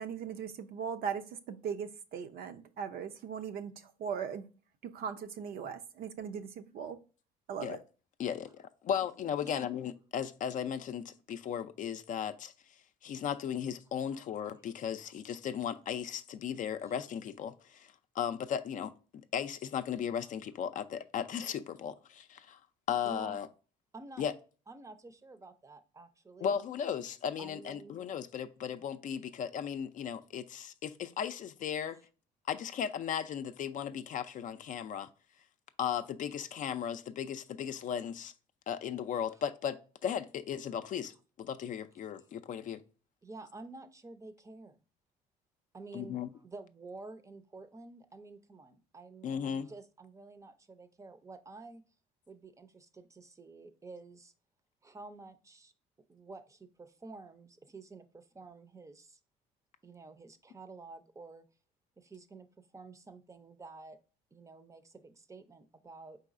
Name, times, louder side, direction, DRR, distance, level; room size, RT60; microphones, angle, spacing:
voice 1, 0.0-4.4 4.8-7.0 7.5-7.8, right 7 dB, 60° right, 0.6 m, -39 dB
voice 2, 8.2-12.5 13.0-18.9 19.3-22.6 22.9-23.5 24.2-24.3 26.4-32.0 32.5-35.1 35.8-38.3 38.7-42.8 45.9-46.3 49.2-49.7, left 8 dB, 50° left, 0.5 m, -36 dB
voice 3, 23.0-23.4 23.9-24.2 24.7-26.6 27.4-28.0 39.3-39.4 43.2-44.8 45.7-51.8 52.3-54.3 54.8-55.7 56.1-59.2 59.8-61.4 62.0-64.0 64.3-66.2, right 3 dB, 15° right, 0.6 m, -50 dB
4.6 x 4.0 x 2.5 m
supercardioid pair, 95°, 18 cm